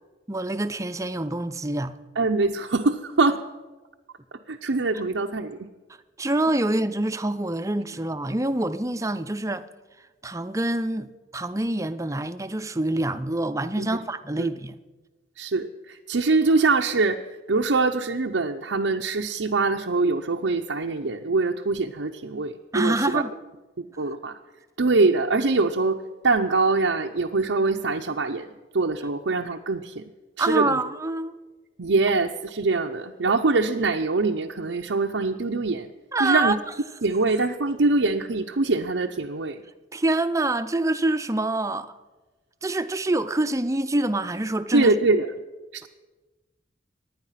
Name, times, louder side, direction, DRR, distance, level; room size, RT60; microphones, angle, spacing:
voice 1, 0.3-1.9 6.2-9.7 10.2-14.8 22.7-23.3 30.4-31.4 36.1-36.6 39.9-42.0 42.6-44.9, right 2 dB, 15° right, 0.6 m, -26 dB
voice 2, 2.2-3.4 4.5-5.7 13.8-14.0 14.4-14.5 15.4-23.2 23.8-24.4 24.8-30.0 30.4-30.8 31.8-35.9 36.2-36.6 37.0-39.6 44.7-45.3 45.7-45.9, right 3 dB, 80° right, 0.7 m, -24 dB
24.5 x 10.5 x 5.8 m
head